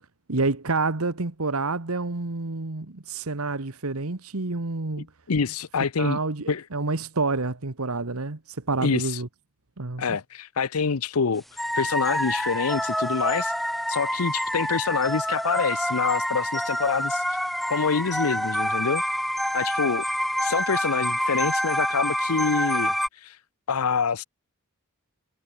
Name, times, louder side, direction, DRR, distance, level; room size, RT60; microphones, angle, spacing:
voice 1, 0.3-5.1 6.0-9.3 9.8-10.2, right 3 dB, 80° right, 1.4 m, -28 dB
voice 2, 5.3-6.2 6.5-6.6 8.8-9.2 10.0-11.4 11.8-13.5 13.9-17.4 17.7-19.0 19.5-20.1 20.4-23.4 23.7-24.2, left 5 dB, 85° left, 0.7 m, -26 dB
sound 1, 11.6-23.1, equal, ahead, 1.1 m, -27 dB
head